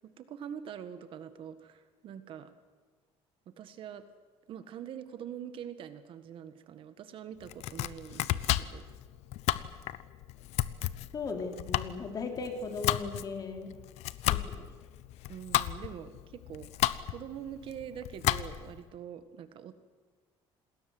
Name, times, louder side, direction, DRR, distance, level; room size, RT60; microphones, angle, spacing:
voice 1, 0.0-2.5 3.4-4.0 4.5-8.9 15.3-19.8, right 9 dB, 50° right, 10 dB, 1.7 m, -44 dB
Domestic sounds home sounds, 7.4-18.8, left 15 dB, 85° left, 1.0 m, -33 dB
voice 2, 11.1-13.7 14.3-14.6, left 4 dB, 35° left, 4 dB, 3.4 m, -37 dB
28.0 x 20.5 x 7.9 m, 1.4 s
cardioid pair, 165°, 11 cm